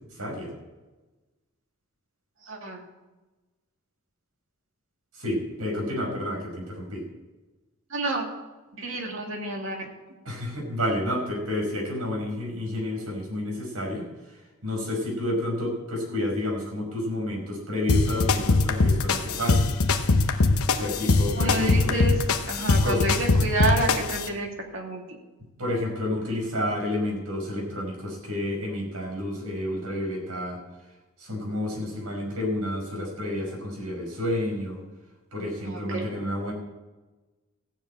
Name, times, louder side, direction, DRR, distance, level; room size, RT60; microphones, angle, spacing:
voice 1, 0.1-0.5 5.2-7.0 10.3-14.0 14.6-19.7 20.7-21.9 22.8-23.0 25.6-30.6 31.2-34.8 35.3-36.5, left 1 dB, 85° right, 0 dB, 5.3 m, -30 dB
voice 2, 2.4-2.8 7.9-8.3 8.8-9.8 21.4-22.2 22.5-24.5 24.7-25.0 35.7-36.1, right 2 dB, 55° right, 1 dB, 2.4 m, -29 dB
sound 1, 17.9-24.3, left 3 dB, 75° left, 0.9 m, -22 dB
15.0 x 7.3 x 8.7 m, 1.2 s
head